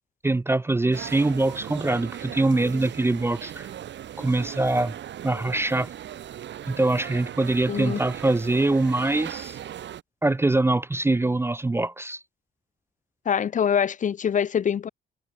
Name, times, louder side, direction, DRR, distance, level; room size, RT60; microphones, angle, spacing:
voice 1, 0.2-3.7 4.2-4.9 5.2-5.9 6.7-9.6 10.2-12.2, right 2 dB, 10° right, 0.5 m, -23 dB
sound 1, 0.9-10.0, right 10 dB, 65° right, 1.9 m, -38 dB
voice 2, 7.7-8.0 13.3-14.9, left 8 dB, 40° left, 0.5 m, -24 dB
cardioid pair, 90°, 20 cm